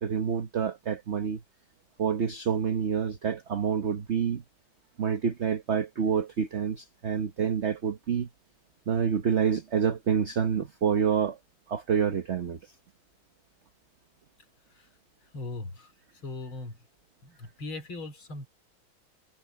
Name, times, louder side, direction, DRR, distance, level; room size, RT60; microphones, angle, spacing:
voice 1, 0.0-1.4 2.0-4.4 5.0-8.3 8.9-11.4 11.7-12.6, right 7 dB, 45° right, 1.0 m, -27 dB
voice 2, 15.3-15.9 16.2-16.7 17.2-18.5, left 2 dB, 85° left, 4.4 m, -38 dB
omnidirectional pair, 2.2 m